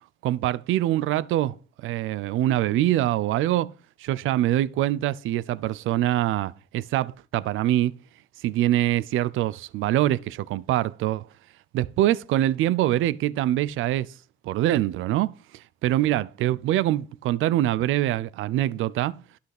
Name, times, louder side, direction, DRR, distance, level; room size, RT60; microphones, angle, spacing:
voice 1, 0.2-1.6 1.8-3.7 4.0-7.9 8.4-11.3 11.7-14.1 14.4-19.2, right 14 dB, 85° right, 0.5 m, -24 dB
12.0 x 5.6 x 5.9 m
cardioid pair, 90°, 20 cm